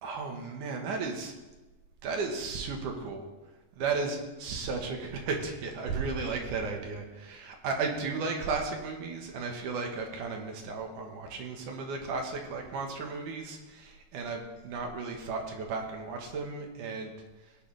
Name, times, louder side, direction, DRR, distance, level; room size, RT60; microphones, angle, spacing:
voice 1, 0.0-1.3 2.0-3.3 3.8-17.1, right 4 dB, 65° right, 2 dB, 2.7 m, -34 dB
18.0 x 10.0 x 3.4 m, 1.1 s
omnidirectional pair, 4.2 m